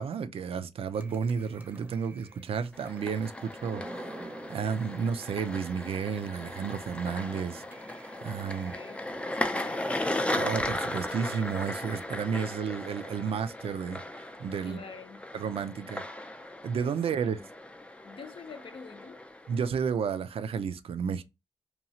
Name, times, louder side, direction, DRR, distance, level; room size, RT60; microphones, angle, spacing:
voice 1, 0.0-7.6 8.2-8.7 10.3-14.8 15.3-16.0 16.6-17.4 19.5-21.2, right 6 dB, 65° right, 0.4 m, -32 dB
sound 1, 0.9-5.7 6.2-6.3 6.6-6.7 7.0-12.1, right 2 dB, 15° right, 0.7 m, -49 dB
sound 2, 2.7-19.7, left 1 dB, 10° left, 0.4 m, -37 dB
voice 2, 8.6-9.0 9.3-9.8 14.6-15.3 17.2-17.5 18.0-19.2, left 5 dB, 60° left, 0.6 m, -46 dB
2.9 x 2.3 x 2.7 m
cardioid pair, 80°, 10 cm